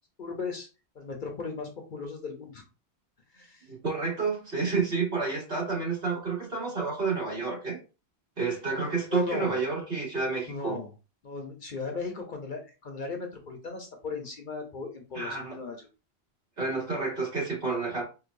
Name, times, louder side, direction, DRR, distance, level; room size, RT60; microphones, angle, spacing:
voice 1, 0.2-0.7 1.0-2.6 3.3-3.6 9.1-9.5 10.5-10.9 11.2-15.8, left 4 dB, 50° left, 0.8 m, -36 dB
voice 2, 3.7-7.8 8.4-10.8 15.1-15.5 16.6-18.0, right 4 dB, 60° right, 2.1 m, -30 dB
4.7 x 2.5 x 2.5 m
omnidirectional pair, 1.1 m